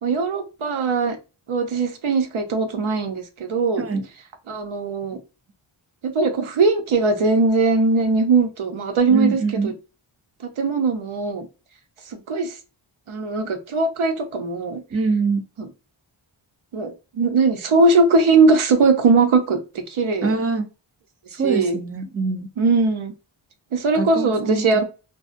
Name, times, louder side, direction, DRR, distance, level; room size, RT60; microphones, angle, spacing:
voice 1, 0.0-1.2 1.5-3.8 4.5-5.2 6.0-9.7 10.4-11.5 12.1-12.5 13.1-14.8 15.6-15.7 16.7-19.6 19.9-20.3 21.4-21.8 22.6-23.1 23.7-24.8, right 3 dB, 80° right, 0.7 m, -20 dB
voice 2, 9.1-9.8 14.9-15.4 20.2-20.7 21.4-22.5 23.9-24.7, right 4 dB, 30° right, 0.5 m, -23 dB
2.6 x 2.0 x 2.4 m
wide cardioid pair, 65°, 48 cm